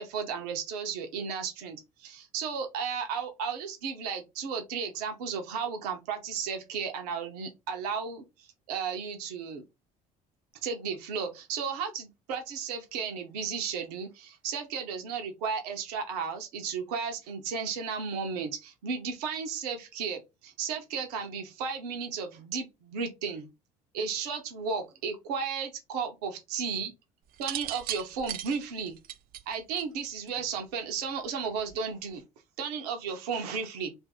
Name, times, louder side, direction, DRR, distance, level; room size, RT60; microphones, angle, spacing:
voice 1, 0.0-9.6 10.6-23.5 23.9-26.9 27.4-29.0 29.5-32.2 32.6-33.9, right 6 dB, 80° right, 0.7 m, -34 dB
sound 1, 27.3-30.5 31.6-31.9, right 11 dB, 50° right, 0.5 m, -38 dB
2.6 x 2.5 x 3.5 m
hypercardioid pair, 65°, 20 cm